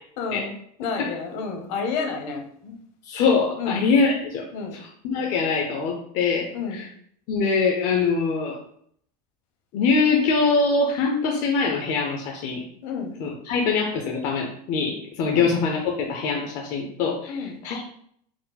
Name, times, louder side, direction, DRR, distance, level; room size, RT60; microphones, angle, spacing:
voice 1, 0.2-0.5 0.8-2.7 3.6-3.8 4.5-4.8 6.5-6.8 12.8-13.1 15.3-15.5 17.3-17.6, left 5 dB, 55° left, 3 dB, 0.9 m, -30 dB
voice 2, 3.1-4.4 4.7-6.9 7.3-8.6 9.7-12.6 13.2-17.8, left 4 dB, 35° left, 1 dB, 0.5 m, -23 dB
4.5 x 2.0 x 3.9 m, 0.65 s
supercardioid pair, 165°, 21 cm